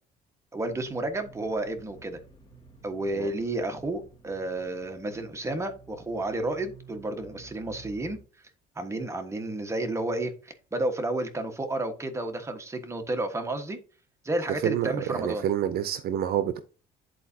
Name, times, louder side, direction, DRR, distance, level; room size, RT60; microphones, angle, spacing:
voice 1, 0.5-2.2 2.8-8.2 8.7-13.8 14.2-15.4, right 2 dB, 15° right, 1.4 m, -31 dB
sound 1, 0.6-8.2, right 3 dB, 25° left, 2.7 m, -52 dB
voice 2, 14.5-16.6, right 10 dB, 65° right, 0.7 m, -28 dB
10.5 x 4.1 x 2.7 m
cardioid pair, 110°, 17 cm